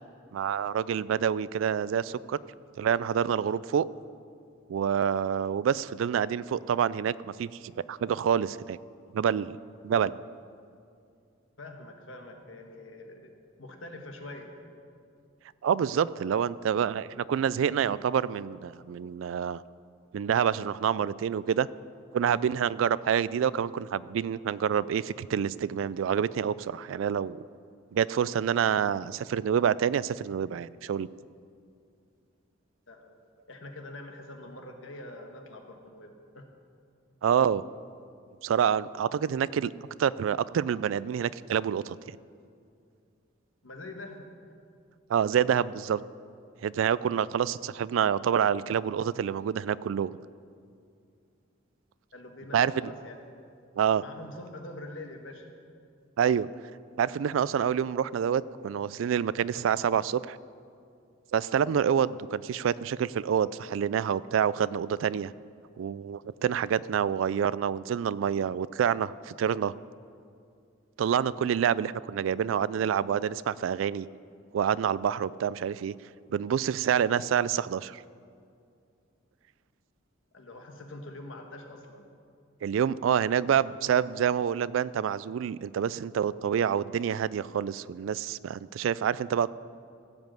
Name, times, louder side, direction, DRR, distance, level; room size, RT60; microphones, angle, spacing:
voice 1, 0.3-2.4 2.8-3.9 4.7-8.8 9.1-9.5 9.8-10.2 15.6-19.6 20.1-21.7 22.1-27.4 27.9-31.1 37.2-37.6 38.4-39.7 40.0-42.0 45.1-46.0 46.6-50.1 52.5-52.9 53.8-54.0 56.2-56.5 57.0-60.4 61.3-65.3 65.8-69.7 71.0-74.1 74.5-75.9 76.3-78.0 82.6-89.5, right 8 dB, 75° right, 18 dB, 0.3 m, -27 dB
voice 2, 11.6-13.3 13.6-14.5 32.9-33.2 33.5-36.5 43.6-44.3 52.1-53.5 53.9-55.5 80.3-82.1, left 2 dB, 75° left, 3 dB, 1.4 m, -44 dB
15.5 x 5.3 x 7.6 m, 2.4 s
head